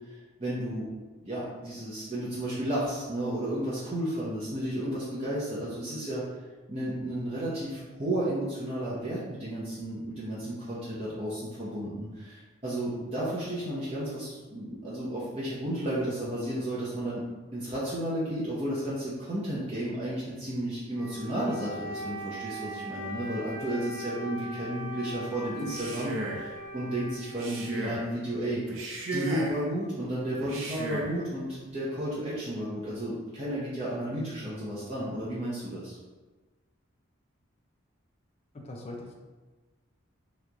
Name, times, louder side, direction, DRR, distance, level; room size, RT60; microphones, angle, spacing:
voice 1, 0.4-0.9 1.2-6.2 6.7-17.2 17.5-28.8 29.1-36.0, right 1 dB, 30° right, -9 dB, 0.6 m, -33 dB
Wind instrument woodwind instrument, 20.9-28.5, equal, 90° right, 1.3 m, -40 dB
Male speech man speaking, 25.6-26.5 27.3-28.1 28.7-29.6 30.4-31.2, right 2 dB, 70° right, 0.6 m, -35 dB
voice 2, 38.5-39.1, left 2 dB, 30° left, 0 dB, 0.4 m, -41 dB
3.0 x 2.3 x 3.8 m, 1.3 s
head